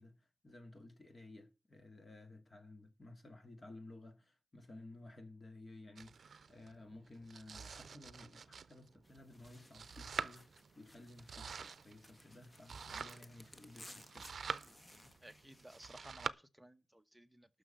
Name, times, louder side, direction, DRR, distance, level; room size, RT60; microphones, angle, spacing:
voice 1, 0.0-14.3, left 2 dB, 35° left, 2.2 m, -56 dB
Domestic sounds home sounds, 6.0-16.3, right 5 dB, 70° right, 0.5 m, -47 dB
sound 1, 9.0-15.9, left 1 dB, 20° left, 1.2 m, -60 dB
voice 2, 15.2-17.6, right 1 dB, 5° right, 1.0 m, -57 dB
9.7 x 6.4 x 7.6 m
wide cardioid pair, 110°, 0 cm